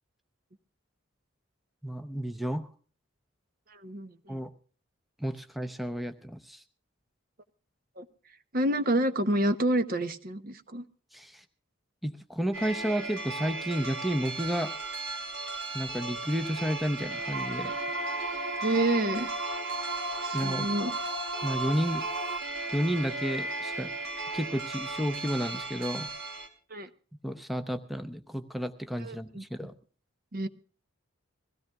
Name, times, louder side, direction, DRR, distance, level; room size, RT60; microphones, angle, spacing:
voice 1, 1.8-2.7 4.3-4.5 5.2-6.6 11.1-11.4 12.0-14.7 15.7-17.7 20.3-20.7 21.4-22.1 22.7-23.9 24.3-26.1 27.2-29.7, equal, ahead, 8 dB, 0.6 m, -31 dB
voice 2, 3.7-4.4 8.0-8.1 8.5-10.8 18.6-19.3 20.2-21.0 26.7-26.9 29.0-29.4 30.3-30.5, right 1 dB, 45° right, 10 dB, 0.8 m, -28 dB
sound 1, 12.5-26.5, right 2 dB, 85° right, 3.1 m, -36 dB
sound 2, 17.3-22.4, right 2 dB, 70° right, 1.3 m, -35 dB
22.5 x 16.0 x 2.3 m, 0.40 s
head